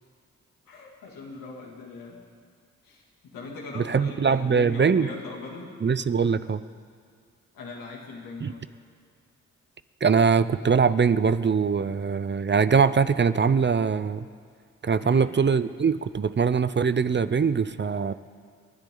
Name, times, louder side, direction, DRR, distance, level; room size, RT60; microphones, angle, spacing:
voice 1, 0.6-2.2 2.8-5.8 7.5-8.6 15.0-15.3, left 3 dB, 90° left, -2 dB, 2.6 m, -40 dB
voice 2, 3.8-5.1 5.8-6.6 8.4-8.5 10.0-14.3 14.8-18.1, right 6 dB, 35° right, 14 dB, 0.6 m, -22 dB
28.5 x 10.5 x 3.9 m, 2.1 s
supercardioid pair, 50°, 33 cm